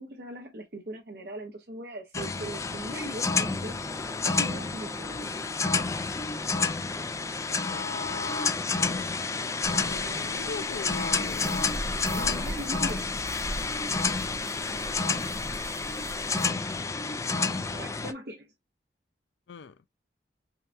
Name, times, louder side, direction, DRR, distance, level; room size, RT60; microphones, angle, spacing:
voice 1, 0.0-3.8 4.2-5.3 9.8-10.5 12.0-13.1 17.7-18.5, right 1 dB, 60° right, 0.8 m, -40 dB
sound 1, 2.1-18.1, left 4 dB, 15° left, 0.4 m, -30 dB
voice 2, 7.5-11.6 19.5-19.8, left 5 dB, 85° left, 0.4 m, -42 dB
sound 2, 9.6-16.5, right 1 dB, 85° right, 1.2 m, -40 dB
5.6 x 2.3 x 2.5 m
head